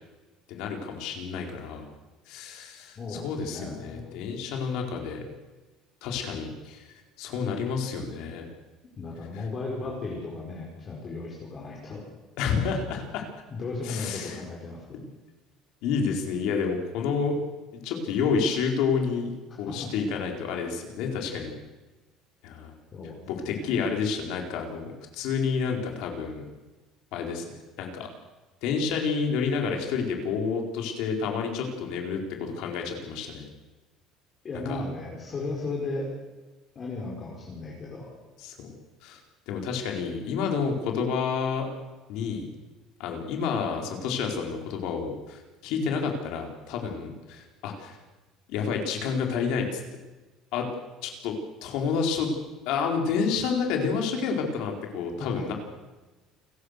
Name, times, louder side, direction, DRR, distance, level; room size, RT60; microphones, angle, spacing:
voice 1, 0.5-1.9 2.3-5.2 6.0-8.5 9.3-9.5 12.4-13.2 13.8-14.5 14.9-15.0 15.8-17.4 17.7-19.3 19.6-21.6 22.4-22.7 23.3-26.4 27.1-27.4 27.8-28.1 28.6-33.4 34.5-34.8 38.4-38.7 39.0-39.2 39.5-41.6 42.1-42.5 43.0-48.0 48.5-49.8 50.5-50.7 51.0-51.4 51.6-52.3 52.7-55.5, left 5 dB, 65° left, 2 dB, 4.3 m, -29 dB
voice 2, 3.0-4.2 9.0-12.0 12.4-12.7 13.5-15.0 19.7-19.9 22.9-23.9 34.4-36.1 36.7-38.1 55.2-55.4, left 3 dB, 30° left, -2 dB, 4.7 m, -36 dB
28.5 x 16.5 x 6.6 m, 1.2 s
cardioid pair, 160°, 0 cm